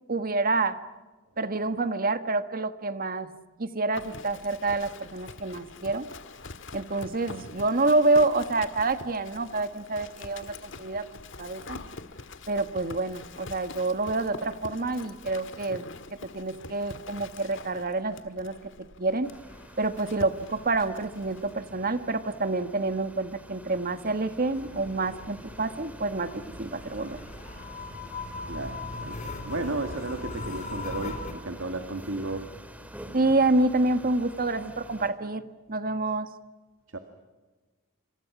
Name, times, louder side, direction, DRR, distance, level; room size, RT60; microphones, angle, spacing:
voice 1, 0.1-0.8 1.4-3.3 3.6-6.1 6.7-11.8 12.5-15.9 16.3-18.6 19.0-19.3 19.8-27.2 33.1-35.4 35.7-36.3, right 2 dB, 45° right, 1.5 m, -27 dB
Livestock farm animals working animals, 3.9-21.5, left 3 dB, 65° left, 1.7 m, -45 dB
sound 1, 19.2-35.1, equal, 5° right, 2.4 m, -47 dB
sound 2, 24.5-31.3, left 3 dB, 40° left, 4.3 m, -39 dB
voice 2, 28.4-32.7 36.9-37.0, right 2 dB, 70° right, 2.0 m, -34 dB
27.5 x 27.5 x 6.1 m
head